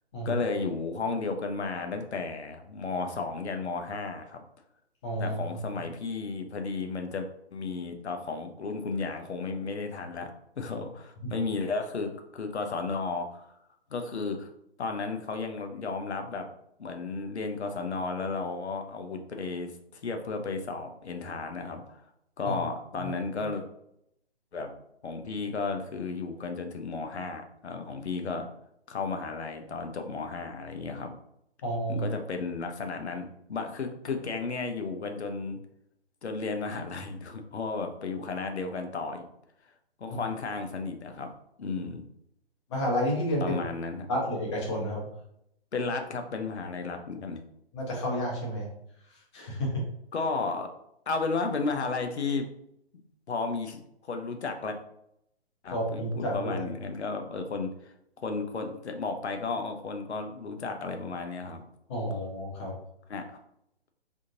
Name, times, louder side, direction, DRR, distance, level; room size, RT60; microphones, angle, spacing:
voice 1, 0.2-4.4 5.2-10.3 10.6-13.6 13.9-14.5 14.8-16.5 16.8-19.7 20.0-22.0 22.4-23.6 24.5-24.7 25.0-28.5 28.9-31.1 31.9-35.6 36.2-39.3 40.0-41.3 41.6-42.0 43.4-44.1 45.7-47.4 50.1-50.7 51.1-52.5 53.3-54.8 55.6-61.6 63.1-63.4, left 4 dB, 75° left, 5 dB, 0.7 m, -33 dB
voice 2, 5.0-5.4 11.2-11.3 22.4-22.6 23.0-23.1 31.6-32.1 40.1-40.2 42.7-43.6 44.1-45.0 47.7-48.7 49.3-49.8 55.7-56.6 61.9-62.8, equal, 25° left, -2 dB, 1.0 m, -30 dB
3.6 x 2.6 x 2.8 m, 0.76 s
figure-of-eight pair, 145°, 33 cm